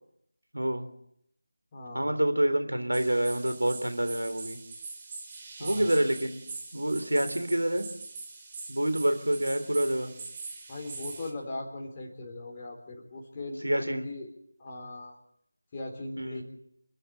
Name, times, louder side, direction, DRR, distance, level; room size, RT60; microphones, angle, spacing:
voice 1, 0.5-0.9 1.9-4.6 5.6-6.4 6.7-7.9 8.7-10.1 13.6-14.1 16.2-16.4, right 1 dB, 80° right, 8 dB, 3.3 m, -27 dB
voice 2, 1.7-2.1 5.6-5.9 10.7-14.3 14.6-15.1 15.7-16.4, left 2 dB, 20° left, -1 dB, 3.9 m, -39 dB
sound 1, 2.9-11.3, right 4 dB, 20° right, 2.2 m, -43 dB
28.0 x 10.0 x 9.2 m, 0.74 s
figure-of-eight pair, 165°, 0 cm